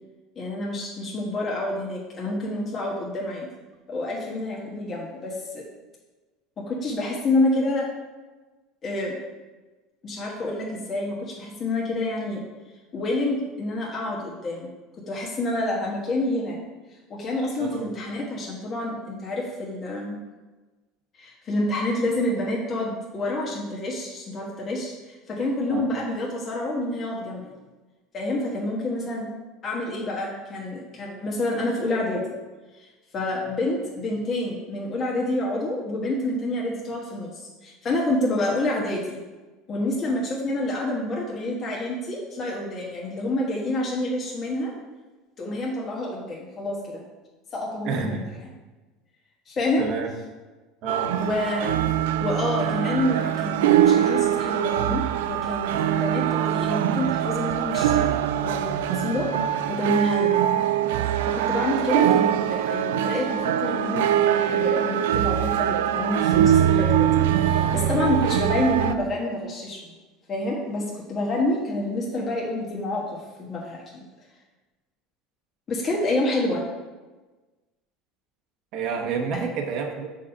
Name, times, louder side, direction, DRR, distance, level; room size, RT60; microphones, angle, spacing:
voice 1, 0.4-3.5 3.9-5.6 6.6-7.9 8.8-9.2 10.0-12.4 12.9-14.7 15.1-16.6 17.1-20.2 21.2-27.5 28.1-29.3 29.6-32.2 32.8-39.2 39.7-44.7 45.4-47.0 47.5-48.2 49.5-50.1 51.2-51.8 52.2-58.2 58.4-59.3 59.7-60.4 61.3-67.1 67.4-69.9 70.3-73.2 73.5-74.0 75.7-76.6 79.3-79.4, left 1 dB, 40° left, -3 dB, 1.3 m, -28 dB
voice 2, 47.8-48.3 49.8-50.1 50.8-51.1 78.7-80.1, right 5 dB, 60° right, 3 dB, 1.0 m, -28 dB
sound 1, 50.9-68.9, right 10 dB, 80° right, 0.3 m, -23 dB
5.2 x 4.2 x 5.5 m, 1.2 s
hypercardioid pair, 85°, 0 cm